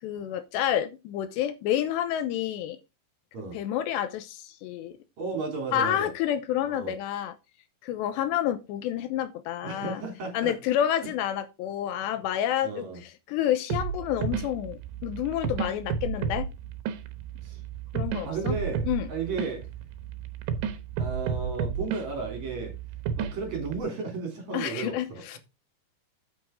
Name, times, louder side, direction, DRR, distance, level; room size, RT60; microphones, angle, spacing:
voice 1, 0.0-2.8 3.5-5.0 5.7-7.3 7.8-10.0 10.3-16.5 17.9-18.6 18.9-19.1 24.5-25.4, left 11 dB, 80° left, 2.9 m, -29 dB
voice 2, 5.2-6.1 6.6-6.9 9.6-10.5 12.6-13.0 17.4-17.6 18.2-19.7 21.0-22.7 23.2-25.4, right 4 dB, 45° right, 4.1 m, -34 dB
sound 1, 13.7-23.8, right 7 dB, 80° right, 3.3 m, -32 dB
9.2 x 8.6 x 3.7 m
omnidirectional pair, 5.1 m